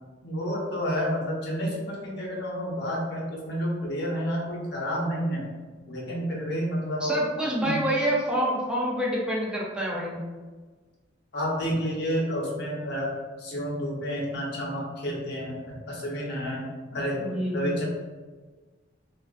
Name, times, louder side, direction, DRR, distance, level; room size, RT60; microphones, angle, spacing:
voice 1, 0.2-5.5 5.9-7.2 7.6-7.8 11.3-13.1 13.4-17.2 17.5-17.8, equal, 65° left, -4 dB, 0.8 m, -30 dB
voice 2, 7.0-10.2 17.2-17.8, right 1 dB, 5° right, -5 dB, 0.4 m, -27 dB
3.4 x 2.4 x 2.4 m, 1.4 s
head